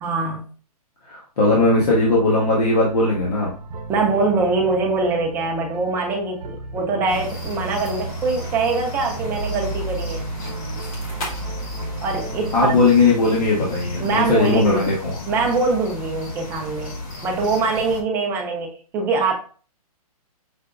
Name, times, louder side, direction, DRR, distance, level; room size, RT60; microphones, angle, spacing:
voice 1, 0.0-0.4 3.9-10.3 12.0-12.7 14.0-14.9 15.3-17.0 17.2-19.3, right 3 dB, 10° right, 1 dB, 0.4 m, -23 dB
voice 2, 1.0-3.5 12.5-15.1, left 3 dB, 80° left, -5 dB, 1.2 m, -18 dB
sound 1, 1.4-14.7, right 3 dB, 85° right, 0.7 m, -34 dB
sound 2, 7.1-18.0, left 2 dB, 60° left, 1.5 m, -34 dB
5.5 x 2.0 x 2.5 m, 0.40 s
hypercardioid pair, 150°, 20 cm